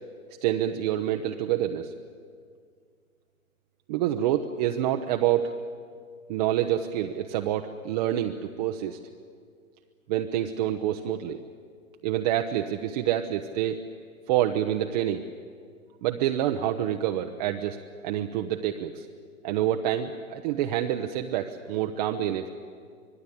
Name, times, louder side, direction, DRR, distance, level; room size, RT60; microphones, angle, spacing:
voice 1, 0.4-1.9 3.9-5.5 6.3-9.0 10.1-11.4 12.0-13.8 14.3-15.2 16.0-19.1 19.4-22.5, right 11 dB, 30° right, 4 dB, 0.9 m, -27 dB
25.0 x 20.0 x 8.6 m, 2.1 s
figure-of-eight pair, 120°, 42 cm